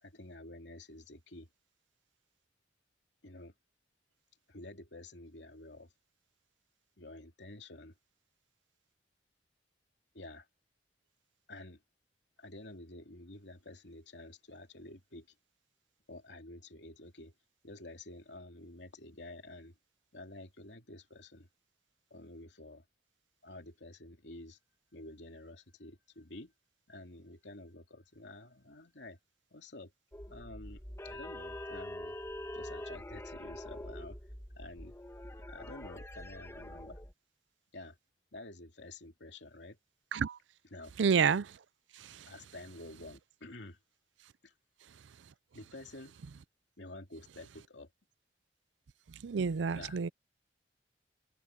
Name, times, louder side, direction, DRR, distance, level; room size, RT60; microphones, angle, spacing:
voice 1, 0.0-1.5 3.2-3.5 4.5-5.9 7.0-7.9 10.1-10.5 11.5-11.8 12.4-15.3 16.1-17.3 17.6-19.7 20.1-21.5 22.1-22.8 23.4-24.6 24.9-26.5 26.9-29.2 29.5-29.9 30.3-32.2 32.5-34.2 34.6-34.9 35.5-37.0 37.7-38.0 38.3-39.8 40.7-40.9 42.3-43.8 44.4-44.5 45.5-46.2 46.8-47.9 49.7-50.0, left 2 dB, 75° left, 2.7 m, -50 dB
sound 1, 30.1-37.1, left 1 dB, 15° left, 1.9 m, -45 dB
voice 2, 41.0-41.6 42.0-42.3 49.2-50.1, right 6 dB, 90° right, 0.5 m, -29 dB
head